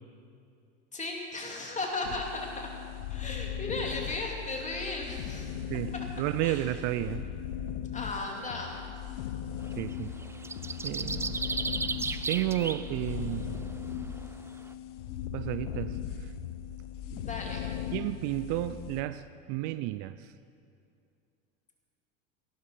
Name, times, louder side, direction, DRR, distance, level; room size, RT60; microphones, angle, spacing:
voice 1, 0.9-2.7 3.1-5.5 5.9-6.1 6.4-6.6 7.9-8.9 17.2-17.7, left 2 dB, 20° left, 0 dB, 3.0 m, -36 dB
sound 1, 2.0-19.0, left 9 dB, 75° left, 0.9 m, -38 dB
voice 2, 6.2-7.3 9.8-10.1 10.8-11.4 12.3-13.6 15.3-16.3 17.1-17.3 17.9-20.3, right 16 dB, 55° right, 13 dB, 0.5 m, -32 dB
sound 2, 9.7-9.9 10.2-12.9 13.3-13.4, right 4 dB, 10° right, 0.3 m, -34 dB
16.5 x 12.5 x 5.0 m, 2.5 s
hypercardioid pair, 85°, 37 cm